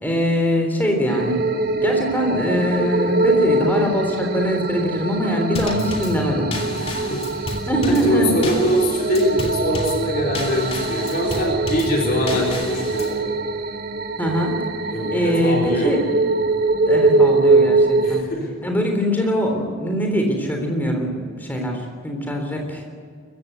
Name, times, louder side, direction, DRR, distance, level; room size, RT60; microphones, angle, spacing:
voice 1, 0.0-1.4 1.8-6.6 7.7-8.3 14.2-14.6 15.1-16.0 16.8-18.2 18.6-22.8, equal, 10° left, 2 dB, 3.5 m, -22 dB
sound 1, 1.1-18.2, right 3 dB, 45° right, 0.9 m, -23 dB
Drum kit / Snare drum / Bass drum, 5.6-13.2, equal, 25° left, 2.7 m, -31 dB
voice 2, 6.8-7.2 7.8-13.3 14.9-16.0 18.0-18.5, equal, 45° left, -1 dB, 3.8 m, -23 dB
23.5 x 15.0 x 8.1 m, 2.2 s
head